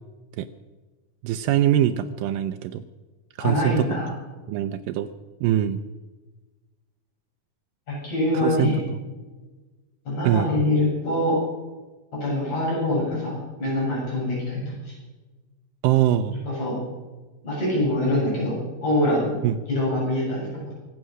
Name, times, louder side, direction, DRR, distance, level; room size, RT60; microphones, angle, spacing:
voice 1, 1.2-2.8 3.4-3.9 4.5-5.1 5.4-5.8 8.4-9.0 10.2-10.5 15.8-16.3 19.4-19.6, right 12 dB, 85° right, 8 dB, 2.3 m, -23 dB
voice 2, 3.4-4.1 7.9-8.8 10.1-11.4 12.1-14.9 16.5-16.8 17.4-18.5 18.8-19.3 19.7-20.7, left 1 dB, 55° left, -5 dB, 8.6 m, -24 dB
24.5 x 8.3 x 6.3 m, 1.2 s
omnidirectional pair, 3.9 m